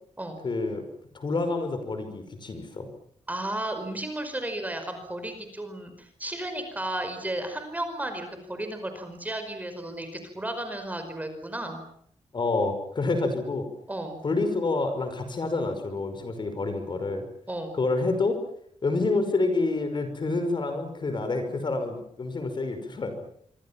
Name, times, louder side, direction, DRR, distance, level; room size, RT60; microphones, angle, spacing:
voice 1, 0.4-0.8 1.1-2.9 12.3-13.7 14.2-17.2 17.7-18.4 18.8-23.1, left 3 dB, 40° left, 8 dB, 5.5 m, -28 dB
voice 2, 3.3-11.8 13.9-14.2 17.5-17.8, right 1 dB, 15° right, 7 dB, 5.1 m, -34 dB
26.0 x 25.0 x 7.3 m, 0.65 s
wide cardioid pair, 145°, 12 cm